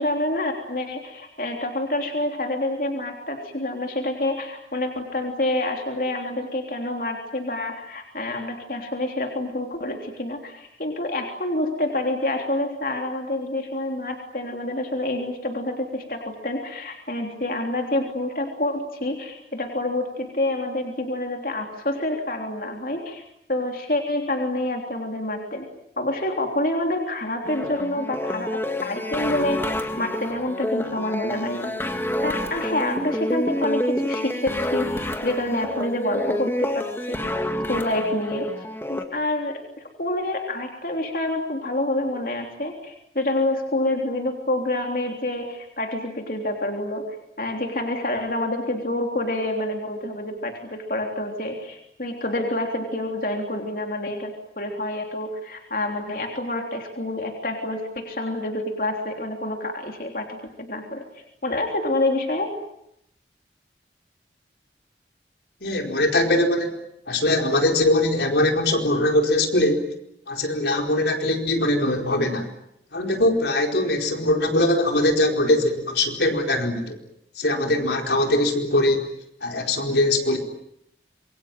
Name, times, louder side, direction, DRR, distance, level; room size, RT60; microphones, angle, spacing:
voice 1, 0.0-23.2 23.5-25.6 26.0-31.7 32.2-37.3 37.7-39.6 40.0-47.1 47.4-61.0 61.4-62.5, left 1 dB, 50° left, 3 dB, 3.4 m, -27 dB
sound 1, 27.4-39.0, left 1 dB, 15° left, 2.0 m, -28 dB
voice 2, 65.6-66.7 67.1-69.9 70.3-72.5 72.9-77.0 77.4-79.1 79.4-80.4, left 1 dB, 75° left, 3 dB, 4.6 m, -21 dB
27.0 x 23.5 x 9.1 m, 0.79 s
head